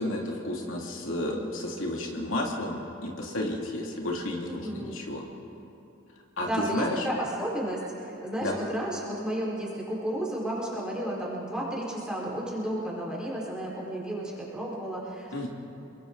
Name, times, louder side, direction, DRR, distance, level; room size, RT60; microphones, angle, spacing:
voice 1, 0.0-5.2 6.4-7.1 8.4-8.6 15.3-15.5, left 1 dB, 80° left, -1 dB, 2.7 m, -32 dB
voice 2, 4.5-5.0 6.4-15.5, right 1 dB, 5° right, -5 dB, 4.8 m, -32 dB
28.5 x 23.0 x 4.0 m, 2.9 s
head